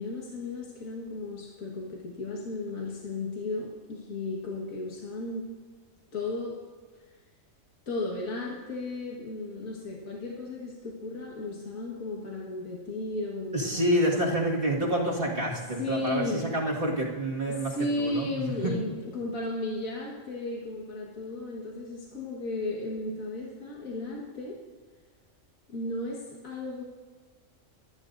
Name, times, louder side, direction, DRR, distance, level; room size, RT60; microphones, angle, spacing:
voice 1, 0.0-5.5 6.1-6.6 7.9-14.4 15.8-16.5 17.5-24.6 25.7-26.8, left 2 dB, 80° left, -2 dB, 2.0 m, -35 dB
voice 2, 13.5-18.8, right 1 dB, 40° right, -3 dB, 2.1 m, -28 dB
23.5 x 10.5 x 2.6 m, 1.5 s
omnidirectional pair, 1.4 m